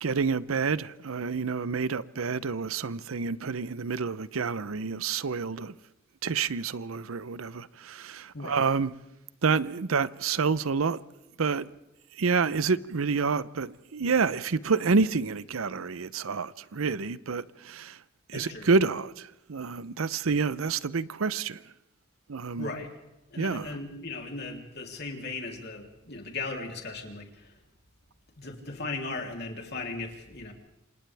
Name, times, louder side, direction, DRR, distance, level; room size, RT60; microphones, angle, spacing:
voice 1, 0.0-5.7 6.2-8.9 9.4-11.0 11.4-11.7 12.2-18.0 18.3-21.6 22.3-22.7 23.4-23.7, right 4 dB, 85° right, 0.7 m, -28 dB
voice 2, 18.3-18.7 22.6-22.9 23.3-27.6 28.4-30.5, left 3 dB, 55° left, 3.3 m, -37 dB
28.0 x 27.0 x 3.5 m
head